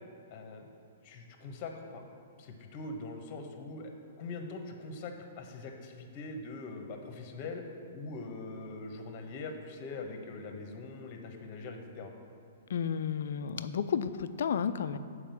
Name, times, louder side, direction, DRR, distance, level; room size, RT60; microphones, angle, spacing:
voice 1, 0.3-0.6 1.0-2.0 2.4-3.9 4.2-7.6 7.9-12.1, left 3 dB, 40° left, 4 dB, 1.2 m, -42 dB
voice 2, 12.7-15.0, left 7 dB, 65° left, 12 dB, 0.4 m, -32 dB
7.3 x 4.8 x 6.9 m, 2.5 s
hypercardioid pair, 120°, 0 cm